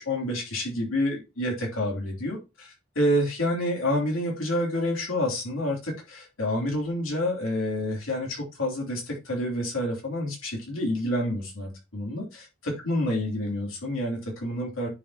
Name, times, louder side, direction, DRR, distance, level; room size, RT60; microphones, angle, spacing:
voice 1, 0.0-12.2 12.8-14.9, left 1 dB, 90° left, 3.2 m, -28 dB
9.9 x 5.6 x 2.9 m
head